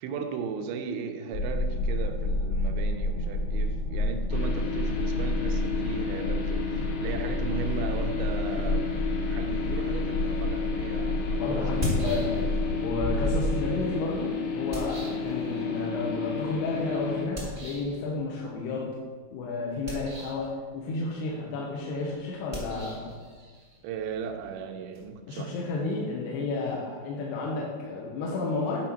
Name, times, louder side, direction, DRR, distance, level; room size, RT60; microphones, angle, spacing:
voice 1, 0.0-11.9 23.8-25.6, right 6 dB, 85° right, 6 dB, 2.9 m, -37 dB
sound 1, 1.3-13.5, left 1 dB, 40° left, 1.6 m, -30 dB
sound 2, 4.3-17.2, left 5 dB, 60° left, 2.1 m, -32 dB
sound 3, 10.6-10.7 11.6-12.7 13.0-15.8 17.3-18.0 19.7-20.5 22.5-25.0, equal, 25° right, 1.1 m, -36 dB
voice 2, 11.4-12.5 12.8-18.9 19.3-23.1 25.3-28.9, left 3 dB, 75° left, -3 dB, 2.9 m, -32 dB
9.9 x 5.5 x 4.5 m, 1.5 s
omnidirectional pair, 5.1 m